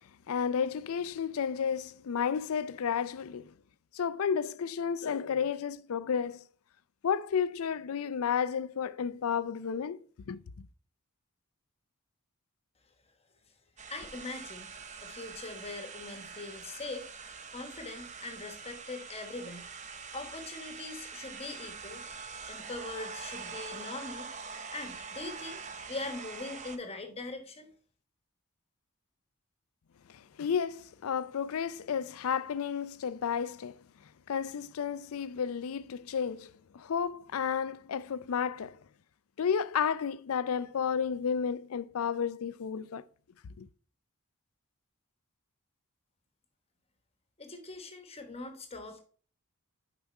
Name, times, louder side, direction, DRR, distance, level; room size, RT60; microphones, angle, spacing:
voice 1, 0.3-3.5 3.9-6.5 7.0-10.0 10.3-10.7 30.1-33.8 34.3-38.8 39.4-43.0 43.6-43.7, left 7 dB, 70° left, 0.4 m, -32 dB
sound 1, 13.8-26.8, right 5 dB, 30° right, 0.7 m, -44 dB
voice 2, 13.9-14.7 15.0-17.1 17.5-19.7 20.1-22.0 22.5-24.3 24.7-25.6 25.9-27.7 47.4-49.0, left 2 dB, 25° left, 1.1 m, -41 dB
7.1 x 5.0 x 4.2 m
head